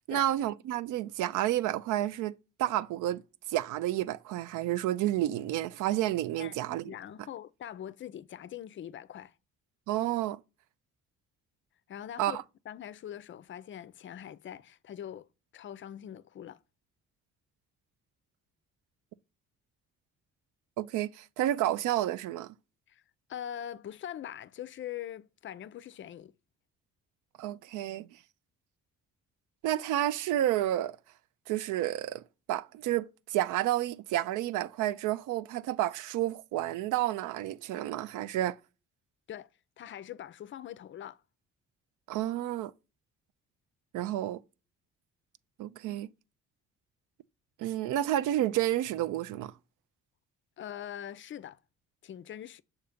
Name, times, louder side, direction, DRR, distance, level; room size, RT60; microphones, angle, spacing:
voice 1, 0.1-3.2 3.5-6.9 9.9-10.4 12.2-12.4 20.8-22.5 27.4-28.1 29.6-31.0 31.5-32.2 32.5-38.6 42.1-42.7 43.9-44.4 45.6-46.1 47.6-49.5, right 13 dB, 85° right, 0.5 m, -30 dB
voice 2, 6.4-9.3 11.9-15.3 15.5-16.6 22.9-23.0 23.3-26.3 39.3-39.5 39.8-41.2 50.6-51.6 52.0-52.6, left 10 dB, 40° left, 0.4 m, -43 dB
6.8 x 2.9 x 5.0 m
cardioid pair, 90°, 30 cm